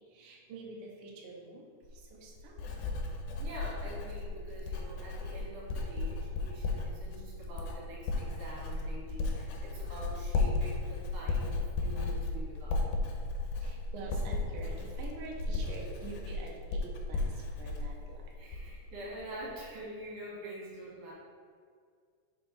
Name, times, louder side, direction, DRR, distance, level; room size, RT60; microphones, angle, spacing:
voice 1, 0.1-1.7 2.1-2.6 13.6-17.3 17.6-18.2, right 3 dB, 80° right, -1 dB, 1.2 m, -46 dB
Writing, 1.8-18.9 19.2-19.6, left 3 dB, 80° left, 2.1 m, -35 dB
voice 2, 3.3-12.9 18.4-21.1, right 1 dB, 55° right, -5 dB, 2.7 m, -45 dB
6.0 x 4.9 x 3.8 m, 2.1 s
omnidirectional pair, 3.6 m